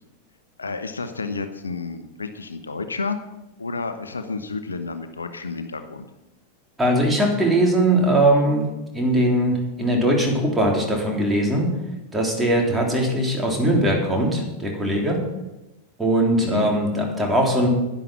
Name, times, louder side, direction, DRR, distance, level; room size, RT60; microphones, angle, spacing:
voice 1, 0.6-3.2 3.6-6.1 16.4-16.7, left 4 dB, 75° left, 8 dB, 0.9 m, -30 dB
voice 2, 6.8-8.6 8.9-11.7 12.1-15.2 16.0-17.7, right 1 dB, 10° right, 0 dB, 3.5 m, -20 dB
11.0 x 10.5 x 6.1 m, 0.97 s
figure-of-eight pair, 90°, 0 cm